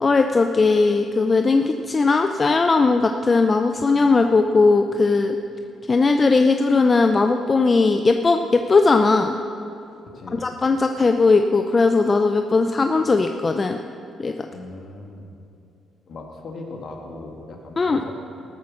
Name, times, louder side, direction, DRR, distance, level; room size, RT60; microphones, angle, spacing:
voice 1, 0.0-5.4 5.9-9.4 10.4-13.8 14.2-14.5 17.8-18.0, left 3 dB, 30° left, 6 dB, 0.5 m, -18 dB
voice 2, 10.0-10.4 14.5-15.4 16.1-18.1, left 2 dB, 60° left, 1 dB, 2.0 m, -38 dB
14.0 x 8.4 x 6.3 m, 2.6 s
cardioid pair, 90°, 0 cm